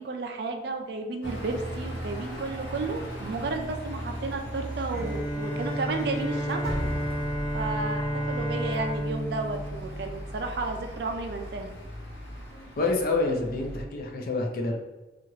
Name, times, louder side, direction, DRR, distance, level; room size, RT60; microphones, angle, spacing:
voice 1, 0.0-6.7 7.5-11.7, right 3 dB, 55° right, 5 dB, 0.4 m, -33 dB
sound 1, 1.2-13.8, right 1 dB, 80° left, 0.9 m, -39 dB
Bowed string instrument, 4.9-10.8, right 1 dB, 40° right, 1.0 m, -32 dB
sound 2, 5.6-9.6, equal, 20° right, 0.8 m, -37 dB
voice 2, 12.8-14.8, left 3 dB, 50° left, 2 dB, 0.5 m, -27 dB
2.8 x 2.4 x 3.0 m, 1.1 s
head